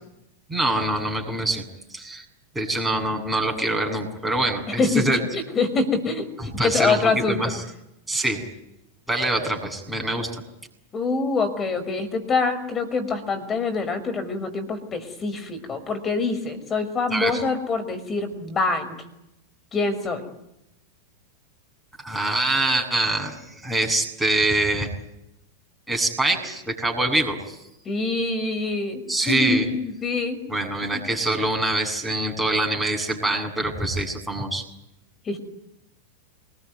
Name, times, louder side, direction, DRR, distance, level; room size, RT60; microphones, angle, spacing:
voice 1, 0.5-1.7 1.9-2.2 2.5-5.2 6.6-7.6 8.1-8.4 9.1-10.4 17.1-17.4 22.0-24.9 25.9-27.6 29.1-29.7 30.5-34.6, right 2 dB, 5° right, 2 dB, 7.6 m, -24 dB
voice 2, 4.7-7.5 10.9-18.9 19.7-20.2 27.9-30.4 30.9-31.0 35.3-35.4, left 3 dB, 20° left, 9 dB, 5.7 m, -25 dB
27.0 x 21.0 x 9.6 m, 0.83 s
figure-of-eight pair, 90°, 0 cm